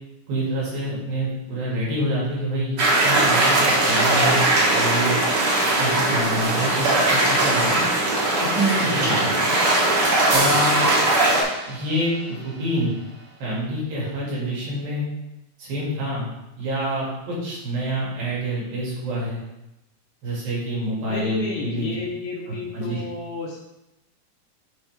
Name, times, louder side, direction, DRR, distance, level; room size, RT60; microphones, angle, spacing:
voice 1, 0.3-2.8 3.0-5.2 5.8-7.8 8.4-9.6 10.3-10.9 11.6-12.9 13.4-15.1 15.6-16.3 16.6-19.4 20.2-22.0 22.5-23.0, right 1 dB, 85° right, -6 dB, 4.2 m, -27 dB
sound 1, 2.8-11.4, right 2 dB, 50° right, 2.0 m, -20 dB
sound 2, 10.3-13.9, right 2 dB, 70° right, 2.9 m, -33 dB
voice 2, 21.1-23.6, left 4 dB, 70° left, -2 dB, 2.0 m, -32 dB
7.6 x 5.4 x 3.5 m, 0.94 s
omnidirectional pair, 4.0 m